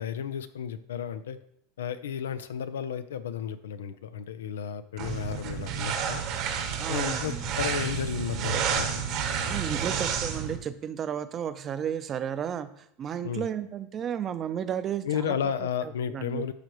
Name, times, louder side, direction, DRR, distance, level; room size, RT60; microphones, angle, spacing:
voice 1, 0.0-1.4 1.8-6.2 6.9-9.0 13.2-13.5 15.0-16.5, left 8 dB, 85° left, 12 dB, 0.6 m, -33 dB
sound 1, 5.0-10.6, right 7 dB, 55° right, 1.2 m, -30 dB
voice 2, 6.8-7.4 9.4-15.4 15.8-16.4, right 8 dB, 35° right, 11 dB, 0.7 m, -33 dB
11.5 x 4.8 x 3.1 m, 0.72 s
hypercardioid pair, 100°, 0 cm